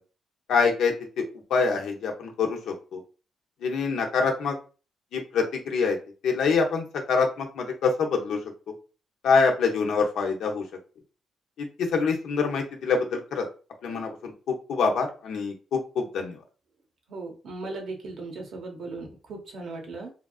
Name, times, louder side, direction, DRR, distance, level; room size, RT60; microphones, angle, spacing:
voice 1, 0.5-1.2 1.5-3.0 3.6-4.6 5.1-6.0 6.2-8.4 9.2-10.6 11.6-13.5 13.8-16.4, left 5 dB, 80° left, 2 dB, 0.7 m, -25 dB
voice 2, 17.1-20.1, right 3 dB, 70° right, 2 dB, 1.0 m, -37 dB
3.3 x 2.5 x 2.3 m, 0.35 s
cardioid pair, 65°, 0 cm